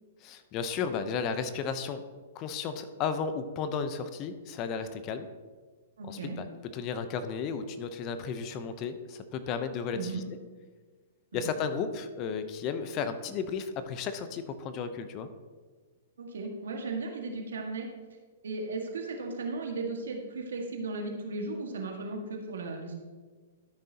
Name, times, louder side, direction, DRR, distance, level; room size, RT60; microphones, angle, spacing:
voice 1, 0.2-2.0 2.3-5.3 6.1-6.5 6.7-10.2 11.3-15.3, left 6 dB, 35° left, 10 dB, 0.7 m, -34 dB
voice 2, 6.0-6.4 9.9-10.2 11.3-11.5 16.2-17.9 18.4-22.9, right 3 dB, 80° right, 1 dB, 1.7 m, -36 dB
13.0 x 6.3 x 2.9 m, 1.4 s
hypercardioid pair, 125°, 0 cm